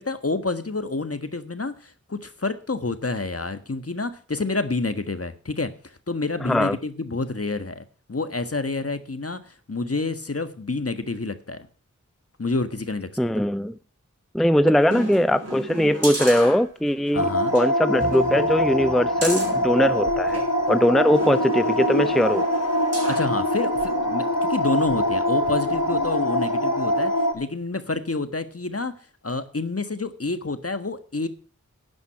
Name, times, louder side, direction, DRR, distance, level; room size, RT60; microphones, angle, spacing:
voice 1, 0.0-11.7 12.4-13.2 14.6-14.7 17.1-17.5 23.1-28.9 29.2-31.3, left 3 dB, 50° left, 1.5 m, -28 dB
voice 2, 6.4-6.8 13.2-13.8 14.3-22.4, equal, ahead, 0.6 m, -21 dB
sound 1, 14.9-17.1 17.5-17.6 18.0-20.5 21.1-23.3 23.8-23.9, right 1 dB, 55° right, 5.7 m, -33 dB
sound 2, 17.2-27.3, equal, 85° left, 2.6 m, -23 dB
11.5 x 9.5 x 5.8 m
wide cardioid pair, 40°, 31 cm